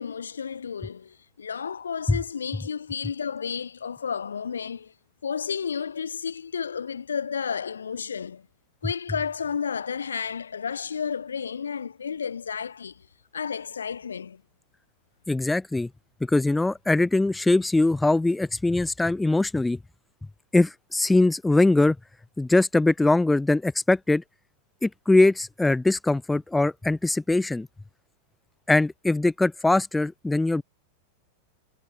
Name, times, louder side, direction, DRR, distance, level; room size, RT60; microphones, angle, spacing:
voice 1, 0.0-4.9 5.2-8.5 8.8-13.0 13.3-14.4, left 6 dB, 70° left, 1.0 m, -32 dB
voice 2, 15.3-15.9 16.3-19.8 20.5-22.0 22.4-24.2 24.8-27.7 28.7-30.6, left 2 dB, 5° left, 0.4 m, -22 dB
figure-of-eight pair, 90°, 0 cm